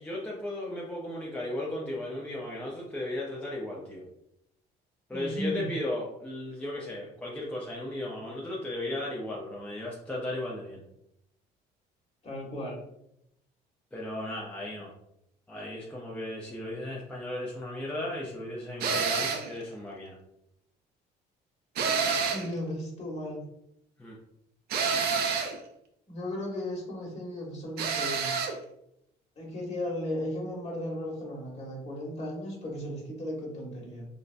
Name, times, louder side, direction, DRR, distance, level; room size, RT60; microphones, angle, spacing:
voice 1, 0.0-4.0 5.1-10.8 13.9-14.9 15.5-20.2 24.0-24.2, left 1 dB, 10° left, -5 dB, 0.6 m, -35 dB
voice 2, 5.1-5.7 12.2-12.8 22.3-23.4 26.1-28.3 29.4-34.1, left 1 dB, 40° left, -4 dB, 1.3 m, -35 dB
sound 1, 18.8-19.5 21.7-22.5 24.7-25.6 27.8-28.6, right 5 dB, 70° right, 0.5 m, -28 dB
3.7 x 2.1 x 2.5 m, 0.79 s
cardioid pair, 110°, 17 cm